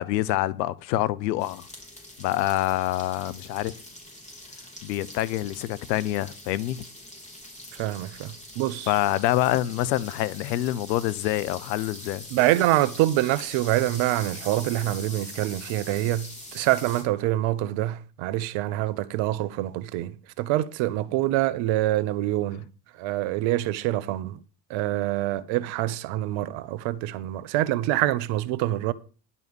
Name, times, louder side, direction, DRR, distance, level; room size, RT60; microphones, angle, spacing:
voice 1, 0.0-1.7 2.2-3.7 4.8-6.8 8.9-12.2, left 15 dB, 85° left, 0.8 m, -26 dB
sound 1, 1.4-17.0, left 1 dB, 15° left, 3.8 m, -43 dB
voice 2, 7.8-8.9 12.3-22.7 23.0-24.4 24.7-28.9, right 15 dB, 70° right, 0.9 m, -26 dB
11.0 x 5.6 x 6.9 m
hypercardioid pair, 75°, 49 cm